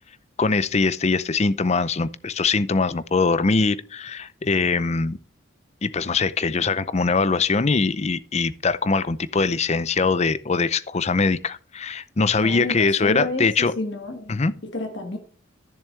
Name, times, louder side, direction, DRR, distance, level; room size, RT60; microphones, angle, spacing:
voice 1, 0.4-5.2 5.8-13.7 14.3-14.5, left 4 dB, 35° left, 0.5 m, -22 dB
voice 2, 12.4-14.3 14.6-15.2, left 2 dB, 60° left, 1.5 m, -30 dB
13.5 x 7.0 x 3.3 m
head